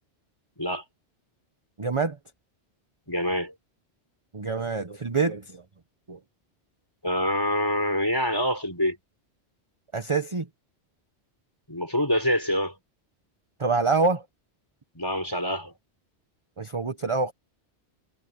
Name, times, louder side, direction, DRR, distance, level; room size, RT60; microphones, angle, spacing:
voice 1, 1.8-2.2 4.3-5.6 6.1-6.2 9.9-10.5 13.6-14.2 16.6-17.3, right 4 dB, 30° right, 1.0 m, -26 dB
voice 2, 3.1-3.5 7.0-9.0 11.7-12.7 14.9-15.7, equal, 20° left, 5.0 m, -26 dB
omnidirectional pair, 1.2 m